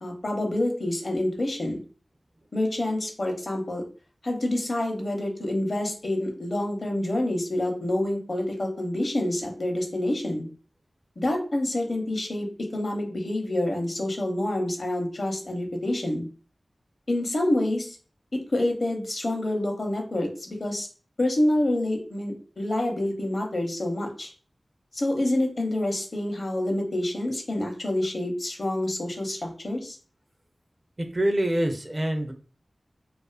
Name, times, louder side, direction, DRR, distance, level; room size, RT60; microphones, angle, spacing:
voice 1, 0.0-1.8 2.5-3.8 4.2-10.5 11.2-12.5 12.7-16.3 17.1-18.0 18.3-20.9 21.2-24.3 24.9-30.0, left 1 dB, 60° left, 2 dB, 0.7 m, -27 dB
voice 2, 31.0-32.3, right 1 dB, 35° right, 5 dB, 0.4 m, -25 dB
2.4 x 2.3 x 2.3 m, 0.38 s
wide cardioid pair, 50°, 0 cm